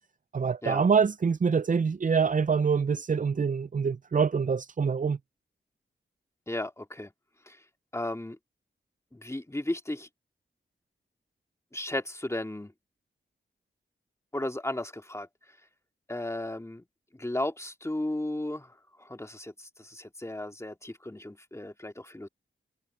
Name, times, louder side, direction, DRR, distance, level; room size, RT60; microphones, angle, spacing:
voice 1, 0.3-5.2, right 6 dB, 40° right, 0.5 m, -25 dB
voice 2, 6.5-7.1 7.5-7.6 7.9-8.4 9.1-10.1 11.7-12.7 14.3-15.3 16.1-16.8 17.2-22.3, left 1 dB, 15° left, 2.4 m, -35 dB
cardioid pair, 60°, 21 cm